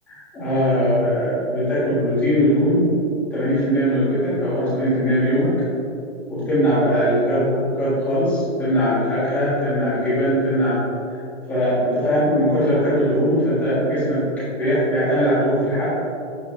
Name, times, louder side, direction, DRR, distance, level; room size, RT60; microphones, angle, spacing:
voice 1, 0.1-2.9 3.3-5.5 6.3-10.8 11.1-11.2 11.5-14.3 14.5-15.9, equal, 5° left, -12 dB, 1.7 m, -20 dB
8.9 x 8.2 x 2.6 m, 2.7 s
hypercardioid pair, 175°, 39 cm